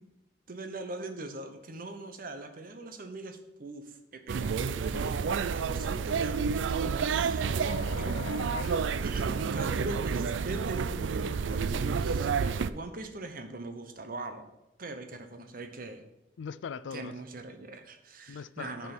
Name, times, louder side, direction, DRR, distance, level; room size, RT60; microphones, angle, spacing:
voice 1, 0.5-8.2 9.0-14.5 14.8-16.0 16.9-18.9, right 2 dB, 50° right, 0.9 m, -41 dB
sound 1, 4.3-12.7, right 5 dB, 85° right, 0.4 m, -30 dB
voice 2, 7.4-8.9 16.4-17.1 18.3-18.9, left 6 dB, 80° left, 0.4 m, -41 dB
10.0 x 4.6 x 6.0 m
head